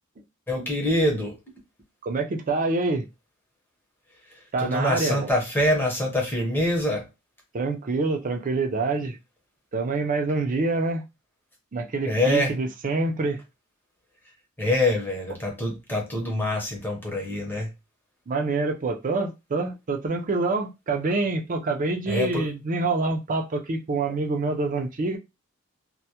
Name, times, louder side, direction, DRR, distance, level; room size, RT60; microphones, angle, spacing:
voice 1, 0.5-1.4 4.3-7.1 12.0-12.6 14.6-17.7 22.1-22.5, left 1 dB, 10° left, 0.7 m, -25 dB
voice 2, 2.0-3.1 4.5-5.2 7.5-9.2 9.7-11.0 11.7-13.4 18.3-25.2, right 3 dB, 40° right, 0.4 m, -26 dB
2.2 x 2.1 x 2.8 m
head